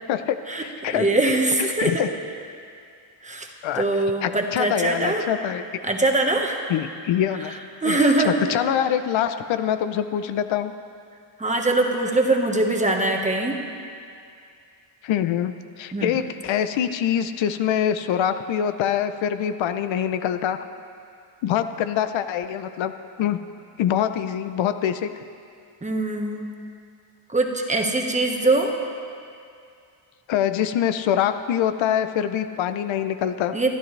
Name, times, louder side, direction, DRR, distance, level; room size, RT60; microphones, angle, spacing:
voice 1, 0.1-1.1 1.8-2.1 3.6-3.9 4.2-5.6 6.7-7.6 7.8-10.7 15.0-20.6 21.4-22.9 23.2-23.4 23.8-25.2 30.3-33.5, left 9 dB, 70° left, 10 dB, 0.7 m, -24 dB
voice 2, 0.9-2.0 3.2-3.5 3.7-5.2 5.8-6.6 7.8-8.3 11.4-13.6 15.9-16.1 25.8-26.5 27.3-28.7 33.5-33.7, right 2 dB, 15° right, 2 dB, 1.3 m, -22 dB
27.0 x 10.5 x 3.3 m, 2.4 s
cardioid pair, 120°, 47 cm